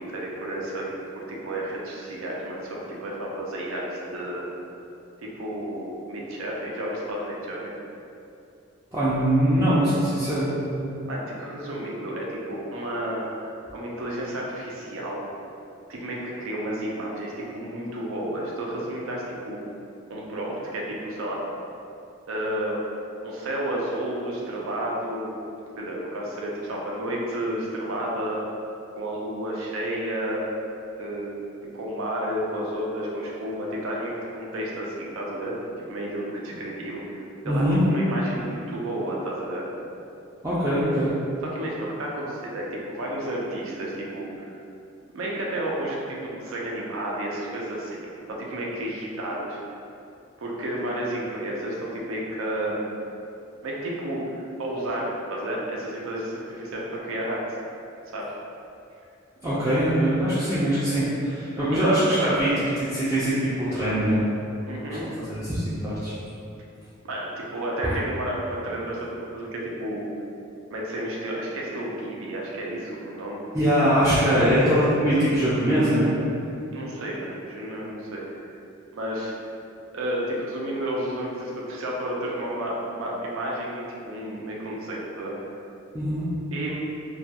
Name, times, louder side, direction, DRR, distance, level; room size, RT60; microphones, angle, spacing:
voice 1, 0.0-4.5 5.2-7.7 11.1-13.3 13.7-15.2 15.9-19.6 20.1-21.5 22.3-22.8 23.2-25.5 25.8-28.4 28.9-30.5 31.0-31.4 31.7-35.6 35.9-39.7 41.4-44.6 45.1-48.0 48.3-49.6 50.4-52.9 53.6-57.4 58.1-58.3 61.7-62.0 64.6-65.1 67.0-70.1 70.7-73.4 74.4-74.7 76.7-78.5 78.9-79.3 79.9-85.5 86.5-86.8, right 1 dB, 85° right, -3 dB, 0.5 m, -31 dB
voice 2, 8.9-10.9 37.4-37.8 40.4-41.1 59.4-64.2 64.9-66.1 67.8-68.0 73.5-76.1 85.9-86.3, equal, 15° right, -13 dB, 0.4 m, -22 dB
2.3 x 2.2 x 2.7 m, 2.6 s
head